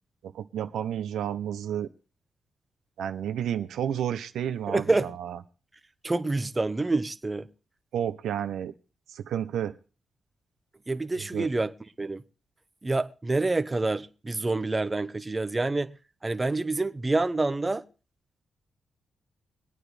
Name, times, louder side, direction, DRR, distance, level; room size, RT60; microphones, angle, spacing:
voice 1, 0.2-1.9 3.0-5.4 7.9-8.7 9.1-9.7 11.2-11.5, right 9 dB, 90° right, 0.6 m, -31 dB
voice 2, 4.7-5.1 6.0-7.5 10.9-12.2 12.8-16.0 16.2-17.8, right 2 dB, 25° right, 0.9 m, -27 dB
23.5 x 8.9 x 3.3 m
cardioid pair, 70°, 0 cm